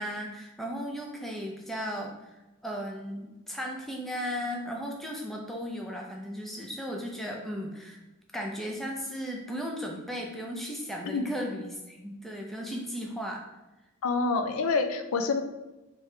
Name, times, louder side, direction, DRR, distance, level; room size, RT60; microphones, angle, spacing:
voice 1, 0.0-2.3 2.6-8.0 8.3-13.4, equal, ahead, 0 dB, 0.5 m, -36 dB
voice 2, 14.0-15.4, left 4 dB, 75° left, 7 dB, 0.4 m, -27 dB
3.3 x 3.1 x 4.8 m, 1.0 s
head